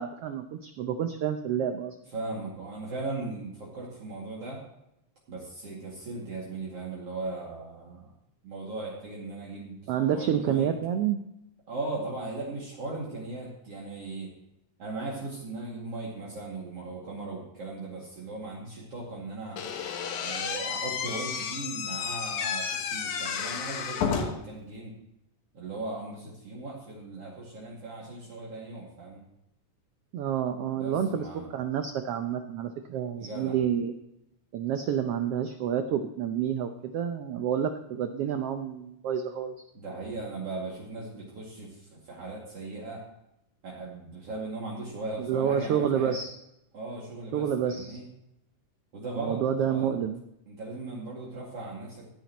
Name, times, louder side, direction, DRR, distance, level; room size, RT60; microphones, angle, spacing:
voice 1, 0.0-1.9 9.9-11.2 30.1-31.3 31.5-33.9 34.5-39.6 45.2-46.3 47.3-48.0 49.2-50.2, right 8 dB, 80° right, 7 dB, 1.3 m, -29 dB
voice 2, 2.1-4.6 5.3-8.1 8.4-10.7 11.7-14.3 14.8-19.6 20.1-24.9 25.5-29.2 30.7-31.5 33.2-33.6 39.7-43.0 43.6-46.1 46.7-48.0 48.9-49.9 50.5-52.1, right 2 dB, 50° right, -4 dB, 3.3 m, -38 dB
Slam / Squeak, 19.6-24.5, left 6 dB, 70° left, 2.6 m, -32 dB
16.5 x 10.0 x 3.0 m, 0.83 s
omnidirectional pair, 3.6 m